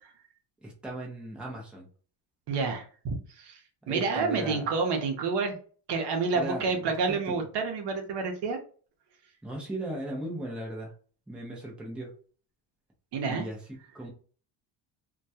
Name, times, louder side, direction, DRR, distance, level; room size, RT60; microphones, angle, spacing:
voice 1, 0.6-1.9 3.9-4.7 6.3-7.3 9.4-10.9 11.3-12.1 13.3-13.6 13.9-14.1, right 1 dB, ahead, -2 dB, 0.6 m, -37 dB
voice 2, 2.5-3.6 3.9-5.5 5.9-8.6 13.1-13.4, right 4 dB, 60° right, 4 dB, 0.7 m, -29 dB
2.2 x 2.2 x 2.7 m, 0.41 s
cardioid pair, 125°, 46 cm